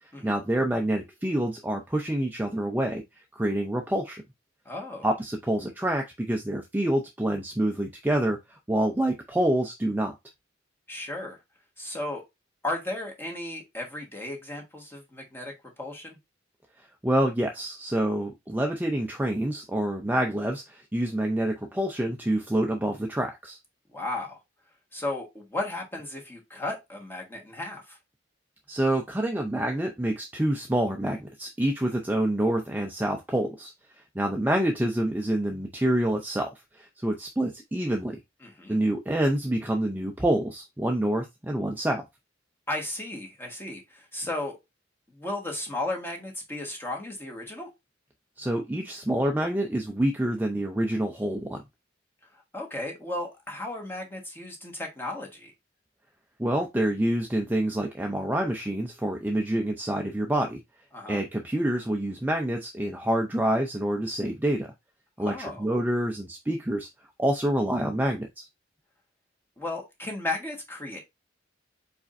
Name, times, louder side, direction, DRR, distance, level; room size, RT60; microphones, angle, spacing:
voice 1, 0.2-3.0 3.3-4.2 5.0-10.1 17.0-23.6 28.7-33.7 34.1-38.2 38.7-42.0 48.4-51.6 56.4-60.6 61.1-64.7 65.2-66.9 67.2-68.5, right 1 dB, 10° right, 0.4 m, -27 dB
voice 2, 4.6-5.1 10.9-11.4 11.8-12.2 12.6-16.2 23.9-24.4 24.9-28.0 38.4-38.8 42.7-44.6 45.1-47.7 52.5-55.5 60.9-61.2 65.2-65.7 69.6-71.0, left 2 dB, 10° left, 1.4 m, -35 dB
4.8 x 4.2 x 2.6 m
head